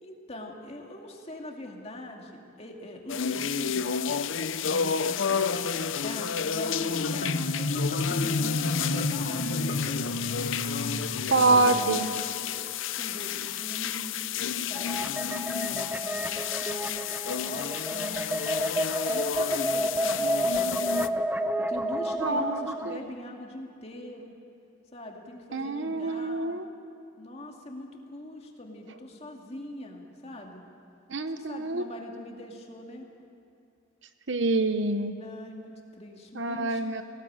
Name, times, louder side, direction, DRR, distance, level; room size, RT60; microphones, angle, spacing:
voice 1, 0.0-7.4 8.0-9.8 10.2-10.5 11.2-12.6 12.9-14.2 14.5-17.1 17.4-21.0 21.6-24.3 24.9-26.6 27.2-30.6 31.3-33.1 35.2-36.8, left 1 dB, 30° left, 1 dB, 2.3 m, -42 dB
sound 1, 3.1-21.1, left 7 dB, 70° left, 0.6 m, -31 dB
Marimba xylophone, 6.5-11.6, left 2 dB, 50° left, 1.3 m, -30 dB
voice 2, 11.3-12.1 22.2-23.0 25.5-26.7 31.1-31.9 34.3-35.1 36.3-37.0, right 3 dB, 60° right, 9 dB, 1.0 m, -26 dB
sound 2, 14.7-22.9, equal, 10° right, 0.6 m, -30 dB
19.5 x 17.0 x 8.9 m, 2.6 s
head